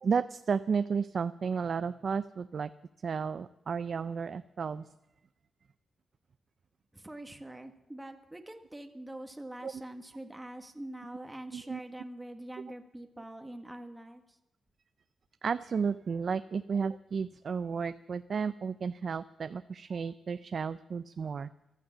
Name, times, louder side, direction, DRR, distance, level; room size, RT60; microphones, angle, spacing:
voice 1, 0.0-2.7 3.0-4.9 9.6-9.7 11.5-11.8 15.4-21.5, right 6 dB, 60° right, 12 dB, 0.4 m, -33 dB
voice 2, 6.9-14.4, right 1 dB, 10° right, 5 dB, 1.4 m, -44 dB
14.5 x 11.5 x 7.3 m, 0.90 s
cardioid pair, 75°, 0 cm